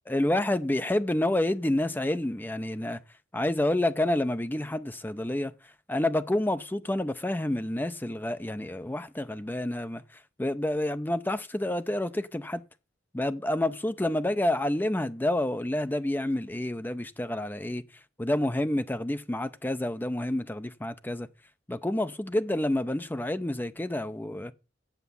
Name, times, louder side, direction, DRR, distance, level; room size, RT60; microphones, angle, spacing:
voice 1, 0.1-3.0 3.3-5.5 5.9-10.0 10.4-12.6 13.1-17.8 18.2-21.3 21.7-24.5, left 1 dB, 10° left, 0.5 m, -28 dB
8.1 x 7.0 x 7.0 m
head